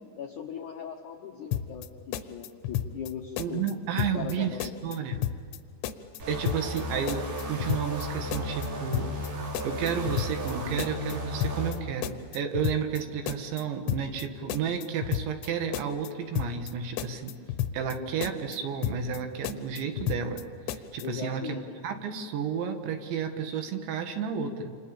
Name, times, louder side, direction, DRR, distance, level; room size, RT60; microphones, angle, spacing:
voice 1, 0.2-4.9 21.0-21.6, left 8 dB, 75° left, 2 dB, 1.8 m, -39 dB
sound 1, 1.5-1.9 2.1-3.1 3.4-3.7 4.0-4.3 4.6-5.6 5.8-6.2 6.5-6.8 7.1-8.1 8.3-8.7 8.9-9.3 9.6-10.5 10.8-11.1 11.4-11.8 12.0-13.0 13.3-13.6 13.9-14.2 14.5-15.5 15.7-16.1 16.4-16.7 17.0-18.0 18.2-18.6 18.8-19.2 19.4-20.4 20.7-21.0, left 11 dB, 90° left, 3.4 m, -32 dB
voice 2, 3.4-5.3 6.3-9.1 9.6-17.3 17.7-24.8, right 7 dB, 75° right, 6 dB, 4.0 m, -32 dB
sound 2, 6.2-11.7, equal, 60° right, 5.9 m, -34 dB
27.5 x 27.5 x 7.2 m, 2.1 s
omnidirectional pair, 5.3 m